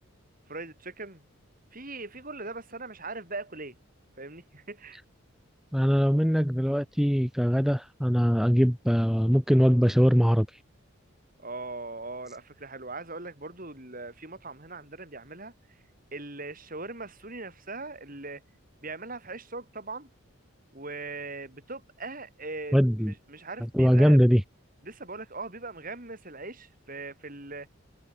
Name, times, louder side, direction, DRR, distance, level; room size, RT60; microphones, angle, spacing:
voice 1, 0.5-1.2 1.7-3.8 4.2-5.0 11.4-15.5 16.1-18.4 18.8-20.1 20.7-24.3 24.8-27.7, right 3 dB, 40° right, 7.1 m, -40 dB
voice 2, 5.7-10.5 22.7-23.1 23.7-24.4, equal, ahead, 3.8 m, -22 dB
head